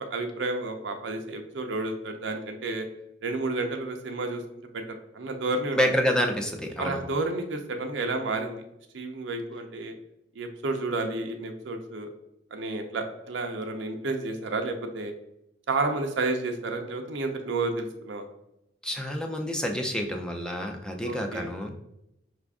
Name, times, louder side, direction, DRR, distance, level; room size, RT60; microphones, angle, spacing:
voice 1, 0.0-2.9 3.2-4.4 4.7-5.8 6.8-8.6 8.9-10.0 10.4-12.1 12.5-15.1 15.7-18.3 21.0-21.5, right 2 dB, 75° right, 4 dB, 0.5 m, -31 dB
voice 2, 5.7-7.0 18.8-21.7, equal, 5° left, 3 dB, 0.4 m, -28 dB
5.0 x 2.5 x 3.4 m, 0.83 s
head